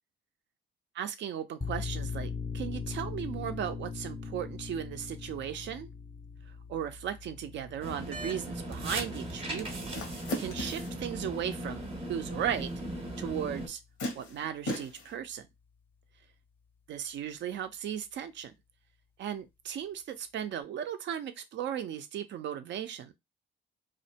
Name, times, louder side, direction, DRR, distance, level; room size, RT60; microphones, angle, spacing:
voice 1, 0.9-5.9 6.7-12.7 13.2-13.8 14.1-15.5 16.9-18.5 19.2-23.1, right 9 dB, 65° right, 0.5 m, -36 dB
sound 1, 1.6-12.9, left 5 dB, 10° left, 0.5 m, -41 dB
sound 2, 7.8-13.7, right 1 dB, 30° right, 0.7 m, -38 dB
sound 3, 9.9-11.0 12.8-12.9 14.0-15.1, equal, 90° left, 0.9 m, -36 dB
2.4 x 2.1 x 2.7 m
cardioid pair, 90°, 20 cm